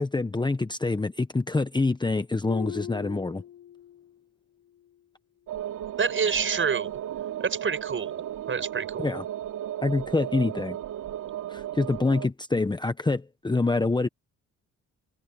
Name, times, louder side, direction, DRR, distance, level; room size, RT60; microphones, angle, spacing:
voice 1, 0.0-3.4 9.0-9.2 9.8-10.8 11.5-14.1, left 3 dB, 15° left, 1.1 m, -26 dB
Harp, 2.5-4.2 4.6-5.0 5.6-5.7, left 11 dB, 70° left, 5.0 m, -40 dB
sound 1, 5.5-12.3, right 11 dB, 80° right, 3.0 m, -35 dB
voice 2, 6.0-7.0 7.4-9.1, right 6 dB, 40° right, 7.2 m, -28 dB
cardioid pair, 90°, 30 cm